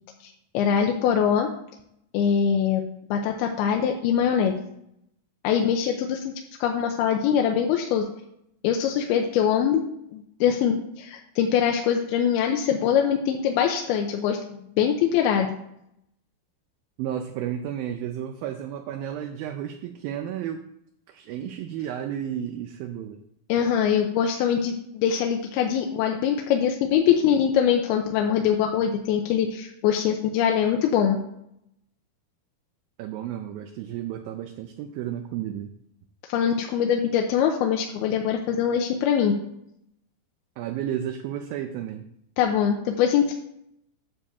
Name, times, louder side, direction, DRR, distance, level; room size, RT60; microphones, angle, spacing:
voice 1, 0.2-1.5 2.1-4.6 5.4-6.3 6.6-8.0 8.6-15.6 23.5-31.2 36.3-39.4 42.4-43.3, left 8 dB, 85° left, 2 dB, 2.6 m, -23 dB
voice 2, 17.0-20.7 21.1-23.2 33.0-35.7 40.6-42.1, right 10 dB, 80° right, 5 dB, 2.2 m, -32 dB
9.8 x 3.6 x 7.0 m, 0.76 s
omnidirectional pair, 4.7 m